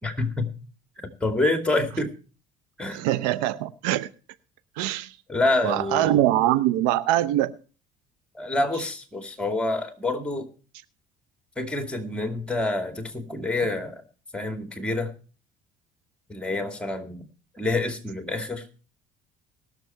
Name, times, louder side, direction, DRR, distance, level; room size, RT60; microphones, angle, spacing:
voice 1, 0.0-0.5 1.2-2.1 2.8-3.0 5.3-6.2 8.3-10.5 11.6-14.0 14.3-15.1 16.3-17.2 17.5-18.6, left 2 dB, 5° left, 6 dB, 2.4 m, -27 dB
voice 2, 2.9-4.1 4.8-5.2 5.6-7.5, right 14 dB, 85° right, 15 dB, 0.7 m, -23 dB
20.0 x 6.8 x 4.5 m, 0.38 s
supercardioid pair, 85°, 21 cm